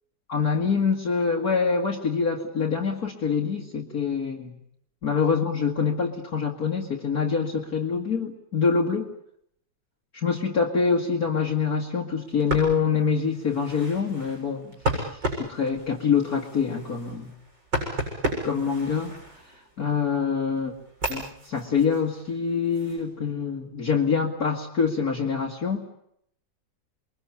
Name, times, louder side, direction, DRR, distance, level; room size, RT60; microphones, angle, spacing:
voice 1, 0.3-4.6 5.0-9.1 10.1-17.3 18.4-19.1 19.8-20.7 21.1-25.9, left 5 dB, 50° left, -1 dB, 2.4 m, -25 dB
sound 1, 12.3-19.9 20.4-23.0, right 1 dB, 75° right, 8.0 m, -34 dB
29.0 x 22.5 x 8.5 m, 0.72 s
omnidirectional pair, 2.0 m